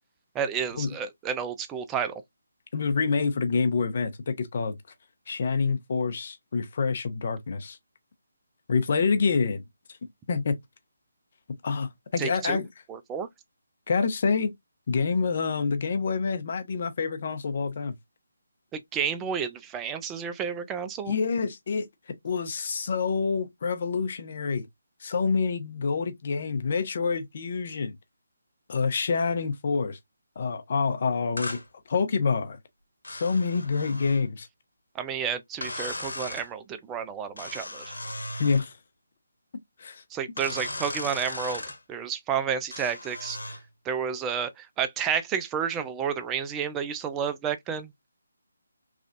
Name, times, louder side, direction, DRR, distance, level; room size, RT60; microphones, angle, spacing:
voice 1, 0.3-2.2 12.2-12.6 12.9-13.3 18.7-21.2 34.9-37.9 40.1-41.6 41.9-43.4 43.9-47.9, right 7 dB, 15° right, 0.3 m, -31 dB
voice 2, 2.7-4.7 5.3-7.8 8.7-9.6 10.3-10.5 11.6-12.7 13.9-14.5 14.9-17.9 21.1-21.9 22.2-24.7 25.0-28.0 28.7-30.0 30.4-31.6 31.9-32.6 33.1-34.5 38.4-38.8 39.8-40.0, left 5 dB, 45° left, 0.7 m, -27 dB
sound 1, 31.4-31.6 33.0-34.3 35.6-36.5 37.4-38.7 40.4-41.8 42.7-43.6, left 1 dB, 80° left, 1.0 m, -36 dB
3.3 x 2.5 x 2.4 m
figure-of-eight pair, 155°, 0 cm